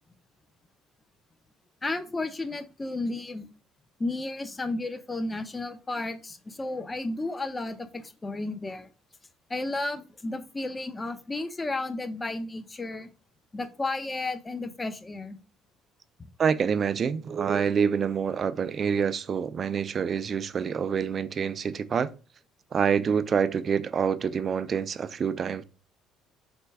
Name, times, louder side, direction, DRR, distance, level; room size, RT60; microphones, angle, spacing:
voice 1, 1.8-3.5 4.0-8.9 9.5-13.1 13.5-15.4, left 2 dB, 25° left, 0.5 m, -33 dB
voice 2, 16.4-22.1 22.7-25.6, right 7 dB, 45° right, 0.3 m, -26 dB
4.2 x 2.2 x 3.5 m
supercardioid pair, 70°, 0 cm